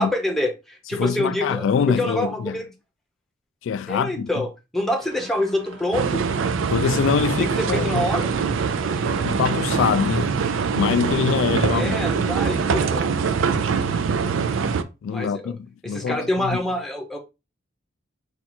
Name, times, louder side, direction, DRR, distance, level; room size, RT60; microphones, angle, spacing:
voice 1, 0.0-2.7 3.9-4.5 4.7-6.2 7.4-8.3 11.6-13.1 15.1-15.5 15.8-17.2, left 1 dB, ahead, 0.7 m, -26 dB
voice 2, 0.9-2.6 3.6-4.4 6.7-8.0 9.2-10.3 10.7-12.0 15.0-16.6, left 7 dB, 75° left, 0.3 m, -24 dB
sound 1, 4.9-11.2, right 2 dB, 65° right, 0.9 m, -45 dB
sound 2, 5.9-14.8, right 5 dB, 80° right, 0.4 m, -23 dB
4.3 x 2.4 x 4.3 m
head